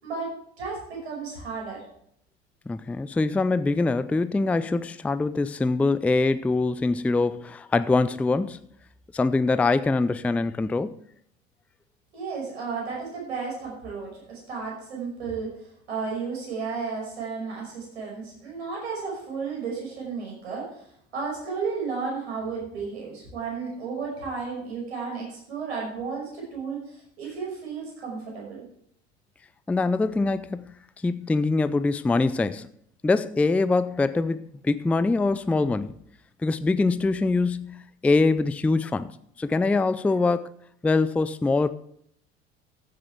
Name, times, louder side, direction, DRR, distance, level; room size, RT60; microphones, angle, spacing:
voice 1, 0.6-1.8 12.1-15.6 15.9-20.8 21.1-28.6, right 5 dB, 75° right, -2 dB, 5.7 m, -33 dB
voice 2, 2.7-8.6 9.1-10.9 29.7-30.7 31.0-32.7 33.0-35.9 36.4-40.5 40.8-41.7, left 3 dB, 5° left, 14 dB, 0.4 m, -24 dB
15.0 x 8.6 x 3.4 m, 0.67 s
figure-of-eight pair, 75°, 33 cm